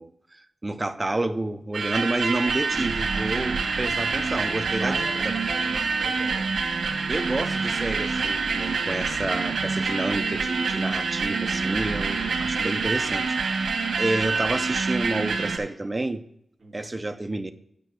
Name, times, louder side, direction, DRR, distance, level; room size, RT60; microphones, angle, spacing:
voice 1, 0.0-5.0 5.2-5.3 7.1-16.2 16.7-17.5, right 2 dB, 20° right, 0.6 m, -29 dB
sound 1, 1.7-15.6, right 4 dB, 75° right, 1.5 m, -26 dB
voice 2, 4.8-6.5 8.6-8.8 16.6-16.8, right 3 dB, 40° right, 1.9 m, -39 dB
9.0 x 5.2 x 6.2 m
wide cardioid pair, 110°, 0 cm